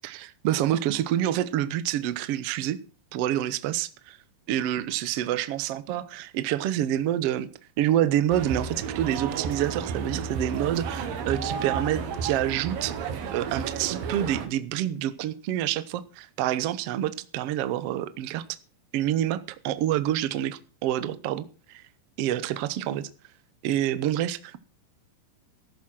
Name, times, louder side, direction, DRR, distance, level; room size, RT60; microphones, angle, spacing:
voice 1, 0.0-2.8 3.1-4.2 4.5-7.5 7.8-12.9 13.3-18.4 18.9-21.8 22.2-23.1 23.6-24.6, right 12 dB, 70° right, 14 dB, 1.4 m, -27 dB
sound 1, 8.3-14.5, right 6 dB, 90° right, 3.5 m, -32 dB
13.5 x 11.0 x 6.1 m, 0.37 s
omnidirectional pair, 4.0 m